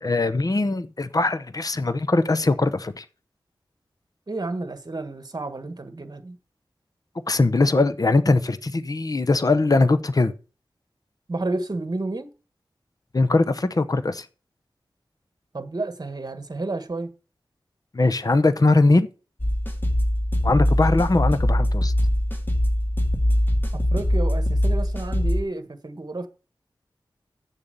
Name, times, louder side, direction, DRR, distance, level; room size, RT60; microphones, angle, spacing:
voice 1, 0.0-3.0 7.3-10.3 13.1-14.2 17.9-19.1 20.4-21.9, left 3 dB, 45° left, 0.8 m, -21 dB
voice 2, 4.3-6.4 11.3-12.3 15.5-17.1 23.7-26.3, right 2 dB, 45° right, 1.5 m, -31 dB
sound 1, 19.4-25.4, equal, 25° left, 2.0 m, -22 dB
8.4 x 7.1 x 6.8 m
wide cardioid pair, 70°, 9 cm